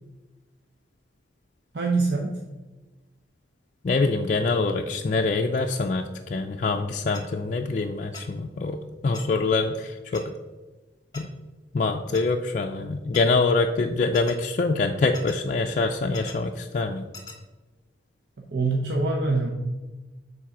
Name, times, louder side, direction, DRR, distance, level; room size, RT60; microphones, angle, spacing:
voice 1, 1.7-2.4 18.4-19.5, right 3 dB, 65° right, -1 dB, 0.8 m, -24 dB
voice 2, 3.8-10.3 11.1-11.3 11.7-17.1, left 3 dB, 40° left, 2 dB, 0.4 m, -25 dB
sound 1, 7.1-7.2 8.1-8.2 9.1-9.2 10.1-10.2 11.1-11.2 12.1-12.2 13.1-13.2 14.1-14.3 15.1-15.4 16.1-16.3 17.1-17.4, left 3 dB, 20° left, 1.0 m, -40 dB
7.4 x 4.1 x 5.9 m, 1.2 s
head